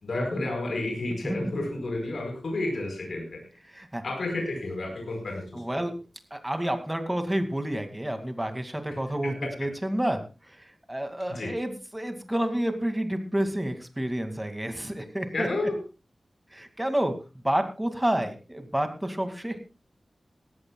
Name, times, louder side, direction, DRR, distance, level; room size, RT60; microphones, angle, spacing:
voice 1, 0.0-3.4 4.0-5.8 9.2-9.7 11.2-11.6 15.3-15.8, left 2 dB, 85° left, 2 dB, 4.5 m, -31 dB
voice 2, 1.2-1.6 3.7-4.0 5.5-5.9 6.3-9.3 9.6-10.2 10.9-15.5 16.5-17.1 17.4-19.6, right 1 dB, 15° right, 6 dB, 2.2 m, -29 dB
18.5 x 15.0 x 2.3 m, 0.30 s
wide cardioid pair, 80°, 0 cm